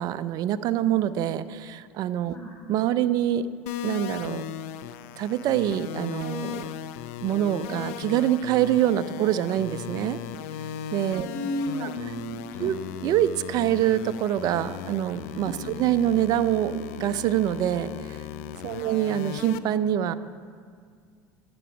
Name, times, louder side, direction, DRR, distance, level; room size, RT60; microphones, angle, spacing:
voice 1, 0.0-2.4 2.7-3.4 3.8-4.4 5.2-6.7 7.2-10.2 10.9-11.3 11.8-11.9 12.6-12.7 13.0-18.2 18.6-20.1, right 11 dB, 55° right, 13 dB, 0.5 m, -25 dB
sound 1, 3.7-19.6, left 10 dB, 75° left, 0.5 m, -37 dB
voice 2, 11.2-12.8 15.5-15.8 18.7-19.0, left 1 dB, 25° left, 0 dB, 3.5 m, -34 dB
11.0 x 6.9 x 8.6 m, 2.1 s
hypercardioid pair, 85°, 8 cm